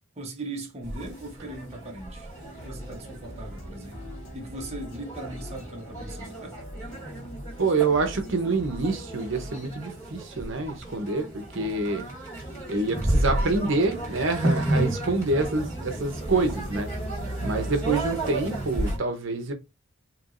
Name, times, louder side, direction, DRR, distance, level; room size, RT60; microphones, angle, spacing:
voice 1, 0.2-2.3 2.6-6.6 17.4-17.7, right 1 dB, 30° right, 0.9 m, -39 dB
sound 1, 0.8-19.0, right 1 dB, 15° left, 1.9 m, -32 dB
sound 2, 2.3-9.5, equal, 60° left, 1.0 m, -43 dB
voice 2, 7.6-12.1 12.7-16.9 17.4-19.5, right 3 dB, 60° right, 0.9 m, -26 dB
4.5 x 3.0 x 2.5 m
head